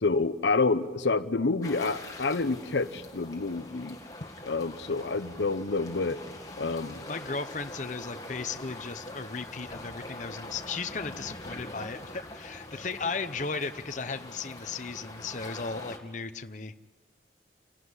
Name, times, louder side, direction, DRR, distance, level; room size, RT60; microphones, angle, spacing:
voice 1, 0.0-4.0 4.4-6.2 6.6-7.0, left 3 dB, 80° left, 12 dB, 0.8 m, -28 dB
sound 1, 1.6-16.0, left 1 dB, 20° left, 2.1 m, -44 dB
voice 2, 7.1-16.7, left 4 dB, 40° left, 8 dB, 0.8 m, -36 dB
29.0 x 11.5 x 9.6 m, 1.3 s
head